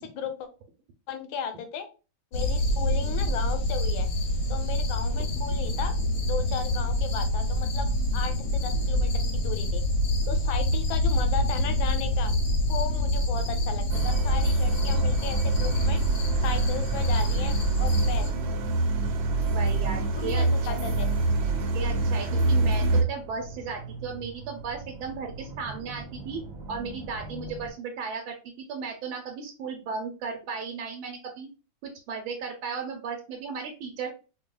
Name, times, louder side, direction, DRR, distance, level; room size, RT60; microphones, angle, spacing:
voice 1, 0.0-0.5 1.1-1.9 2.3-4.1 4.5-5.9 6.2-9.8 10.3-12.3 12.7-16.0 16.4-18.3 20.2-21.1, left 7 dB, 80° left, 9 dB, 1.4 m, -35 dB
sound 1, 2.3-18.3, left 1 dB, 60° left, 1.1 m, -26 dB
sound 2, 13.9-23.0, right 3 dB, 75° right, 1.3 m, -25 dB
sound 3, 14.6-27.7, right 3 dB, 50° right, 1.3 m, -43 dB
voice 2, 19.5-20.8 21.7-26.4 26.7-31.5 31.8-34.1, right 5 dB, 90° right, 2 dB, 1.5 m, -35 dB
4.7 x 2.7 x 2.2 m, 0.33 s
omnidirectional pair, 2.2 m